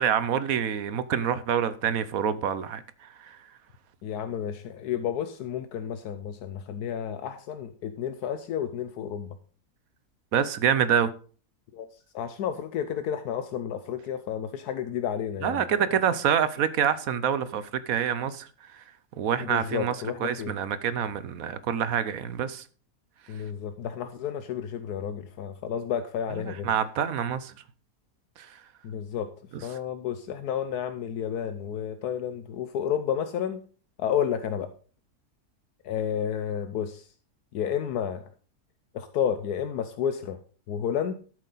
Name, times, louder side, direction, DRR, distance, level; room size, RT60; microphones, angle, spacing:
voice 1, 0.0-3.4 10.3-11.1 15.4-18.8 19.2-22.6 26.4-27.5 28.4-28.6, right 8 dB, 65° right, 1.1 m, -27 dB
voice 2, 4.0-9.3 11.7-11.9 12.1-15.6 19.4-20.6 23.3-26.7 28.8-29.3 29.6-33.6 34.0-34.7 35.8-37.1 37.5-38.2 38.9-40.4 40.7-41.1, left 8 dB, 80° left, 1.2 m, -31 dB
12.5 x 7.6 x 4.0 m
omnidirectional pair, 1.7 m